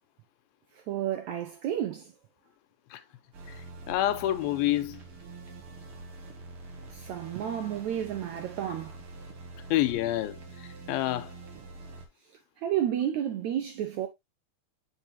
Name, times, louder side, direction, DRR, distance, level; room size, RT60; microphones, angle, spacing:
voice 1, 0.7-2.1 6.9-9.0 12.6-14.1, right 10 dB, 80° right, 1.7 m, -31 dB
sound 1, 3.3-12.1, right 3 dB, 50° right, 2.0 m, -45 dB
voice 2, 3.9-5.0 9.7-10.4 10.9-11.3, left 14 dB, 85° left, 2.6 m, -27 dB
8.3 x 5.4 x 2.7 m
omnidirectional pair, 4.2 m